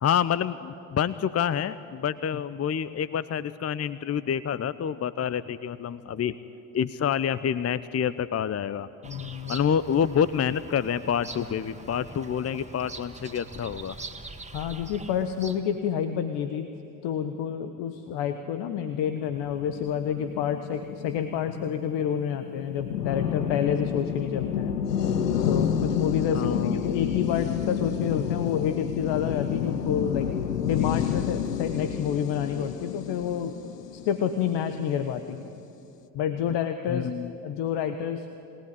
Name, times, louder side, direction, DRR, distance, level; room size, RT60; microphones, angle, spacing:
voice 1, 0.0-6.4 6.7-8.9 9.5-14.0 26.3-26.9 36.9-37.3, left 8 dB, 35° left, 16 dB, 0.8 m, -27 dB
voice 2, 9.0-9.6 14.5-16.7 17.0-24.8 25.4-30.3 30.6-33.6 33.9-35.5 36.1-37.1 37.4-38.3, left 8 dB, 65° left, 9 dB, 1.4 m, -29 dB
Bird vocalization bird call bird song, 9.0-15.8, right 3 dB, 15° right, 1.9 m, -43 dB
sound 1, 19.5-35.0, left 8 dB, 90° left, 0.8 m, -30 dB
28.0 x 18.5 x 9.9 m, 2.8 s
hypercardioid pair, 50°, 46 cm